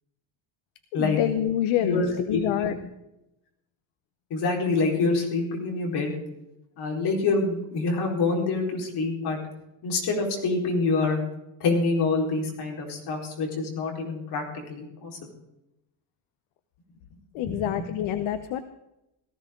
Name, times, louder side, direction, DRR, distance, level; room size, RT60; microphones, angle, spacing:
voice 1, 0.9-2.8 17.3-18.6, left 11 dB, 70° left, 9 dB, 1.0 m, -27 dB
voice 2, 1.8-2.8 4.3-6.1 6.8-9.4 9.8-11.2 11.6-14.4 14.7-15.1 17.5-17.6, left 3 dB, 50° left, 0 dB, 4.4 m, -26 dB
18.0 x 15.0 x 3.8 m, 0.89 s
cardioid pair, 155°, 49 cm